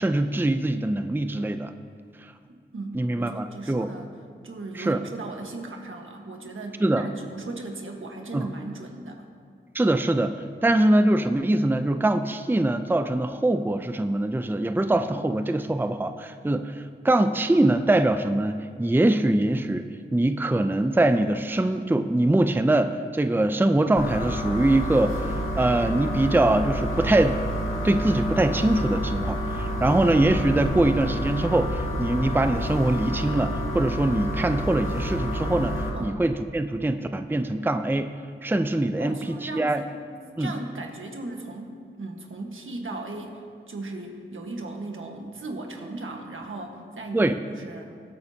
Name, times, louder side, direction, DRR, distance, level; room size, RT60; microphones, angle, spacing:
voice 1, 0.0-1.7 2.9-3.9 4.7-5.0 6.8-7.0 8.3-8.5 9.7-10.3 10.6-16.7 17.0-19.8 20.1-25.3 25.6-27.4 27.8-38.1 38.4-39.1 39.4-39.8 40.4-40.5 47.1-47.4, right 1 dB, 10° right, 9 dB, 0.5 m, -23 dB
voice 2, 2.5-4.1 4.4-9.3 35.9-36.2 39.0-39.9 40.4-43.4 43.7-47.9, right 2 dB, 80° right, 2 dB, 1.4 m, -37 dB
sound 1, 24.0-35.9, equal, 85° left, 1.9 m, -29 dB
22.5 x 8.8 x 2.9 m, 2.2 s
wide cardioid pair, 55°, 20 cm